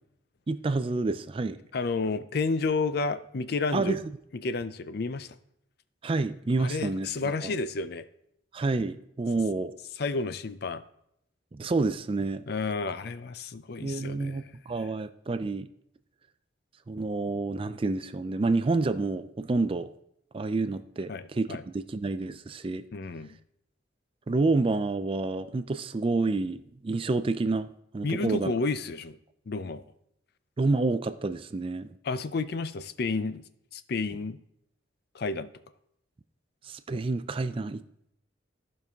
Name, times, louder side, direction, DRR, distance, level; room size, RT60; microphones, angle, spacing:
voice 1, 0.5-1.6 3.7-4.0 6.0-7.5 8.5-9.8 11.5-12.4 13.8-15.7 16.9-19.9 20.3-22.8 24.3-28.5 30.6-31.9 36.7-37.8, right 3 dB, 30° right, 12 dB, 0.4 m, -29 dB
voice 2, 1.7-4.0 4.4-5.3 6.6-8.0 10.0-10.8 12.5-14.4 21.1-21.6 22.9-23.4 28.0-29.2 29.5-29.9 32.0-33.4 33.7-34.4 35.1-35.5, left 3 dB, 55° left, 13 dB, 0.5 m, -31 dB
14.0 x 5.3 x 3.5 m, 0.75 s
head